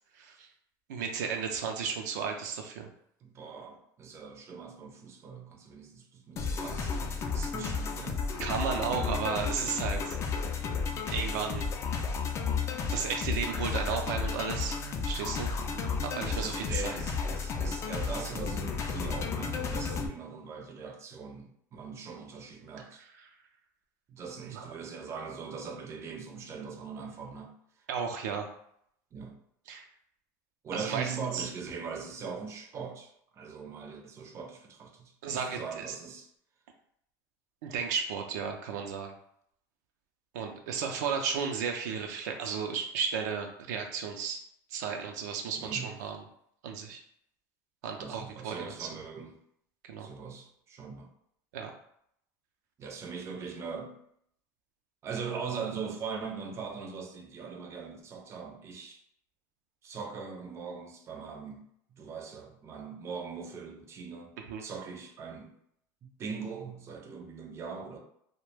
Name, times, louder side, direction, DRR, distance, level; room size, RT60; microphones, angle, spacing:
voice 1, 0.2-0.5 0.9-2.9 8.4-10.2 11.1-11.7 12.9-17.0 24.5-24.6 27.9-28.5 29.7-29.8 30.7-31.1 31.3-31.5 35.2-35.9 37.6-39.1 40.3-44.4 44.7-46.2 46.6-47.0 47.8-48.9 49.8-50.1 51.5-51.7 64.5-64.6, right 6 dB, 85° right, 0.4 m, -34 dB
voice 2, 3.2-8.4 16.2-23.0 24.1-27.5 29.1-29.4 30.6-36.3 45.6-45.9 48.0-49.4 50.0-51.1 52.8-54.0 55.0-59.0 59.8-61.6 62.0-64.3 64.6-65.5 66.0-68.0, right 5 dB, 30° right, 0.5 m, -41 dB
sound 1, 6.4-20.1, left 5 dB, 30° left, 0.3 m, -33 dB
2.2 x 2.1 x 3.1 m
supercardioid pair, 120°, 9 cm